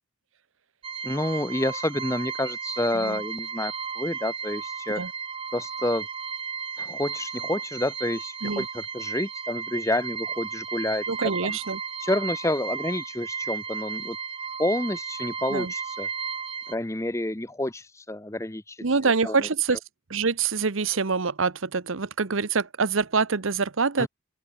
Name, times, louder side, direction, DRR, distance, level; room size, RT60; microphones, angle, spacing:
sound 1, 0.8-16.7, right 6 dB, 25° right, 0.7 m, -34 dB
voice 1, 1.0-5.0 5.5-6.1 6.8-11.0 11.5-11.6 12.0-14.2 14.6-16.1 16.7-18.8 19.2-19.5 24.0-24.1, left 1 dB, 15° left, 0.9 m, -29 dB
voice 2, 11.1-11.8 15.5-15.7 18.8-19.8 20.1-24.1, right 4 dB, 75° right, 1.0 m, -25 dB
open air
head